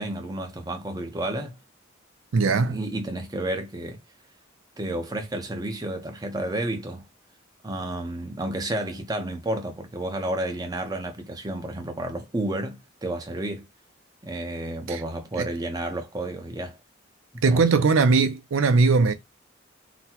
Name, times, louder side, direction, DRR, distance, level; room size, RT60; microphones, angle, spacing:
voice 1, 0.0-1.6 2.6-4.0 4.8-7.0 7.6-13.7 14.2-16.8 17.3-17.9, right 1 dB, 20° right, 0.6 m, -31 dB
voice 2, 2.3-2.8 14.9-15.0 15.4-15.5 17.4-19.1, right 4 dB, 90° right, 0.5 m, -20 dB
4.0 x 2.1 x 2.8 m
head